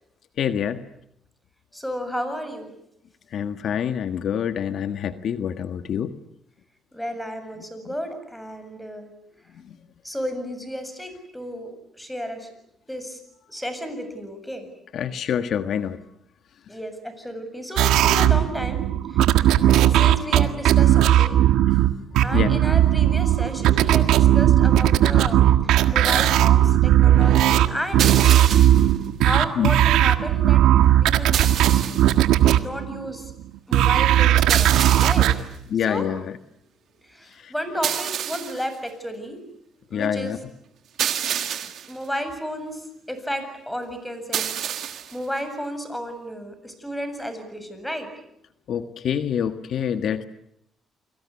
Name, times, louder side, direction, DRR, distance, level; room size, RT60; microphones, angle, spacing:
voice 1, 0.4-0.8 3.3-6.1 14.9-16.0 22.3-22.6 29.6-29.7 35.7-36.3 37.4-37.5 39.9-40.4 48.7-50.2, left 8 dB, 65° left, 9 dB, 1.5 m, -26 dB
voice 2, 1.7-2.7 6.9-9.1 10.0-12.5 12.9-13.2 13.5-14.7 16.7-18.8 19.1-19.6 19.9-21.4 22.2-28.2 29.2-30.6 30.9-31.4 32.4-33.3 33.7-35.3 35.8-36.1 37.1-39.4 39.9-40.4 41.9-44.6 44.9-48.1, equal, 5° left, 9 dB, 7.5 m, -32 dB
sound 1, 17.8-33.3 33.7-35.3, right 12 dB, 90° right, 1.7 m, -17 dB
sound 2, 28.0-28.9 31.3-32.2 34.5-35.4 37.8-38.7 41.0-41.9 44.3-45.2, right 9 dB, 70° right, 2.6 m, -27 dB
30.0 x 23.5 x 8.4 m, 0.78 s
cardioid pair, 90°, 0 cm